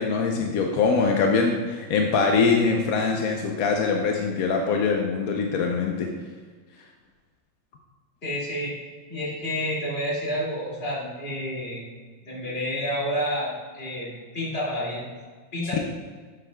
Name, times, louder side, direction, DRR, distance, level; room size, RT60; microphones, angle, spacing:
voice 1, 0.0-6.1, left 4 dB, 70° left, 2 dB, 0.8 m, -23 dB
voice 2, 8.2-8.8 9.1-11.8 12.2-14.1 14.3-15.1 15.5-15.8, equal, 30° left, -6 dB, 2.4 m, -29 dB
10.0 x 7.7 x 2.2 m, 1.5 s
omnidirectional pair, 2.2 m